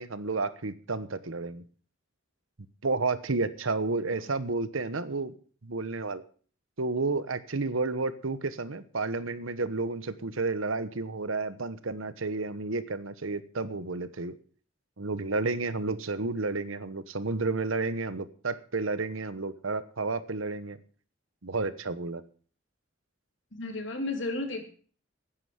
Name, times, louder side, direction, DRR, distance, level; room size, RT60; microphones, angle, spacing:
voice 1, 0.0-1.6 2.8-5.3 5.6-6.2 6.8-14.4 15.0-20.8 21.4-22.2, right 3 dB, 85° right, 14 dB, 1.1 m, -31 dB
voice 2, 23.5-24.7, left 2 dB, 65° left, 5 dB, 2.8 m, -33 dB
9.9 x 9.9 x 7.4 m, 0.44 s
head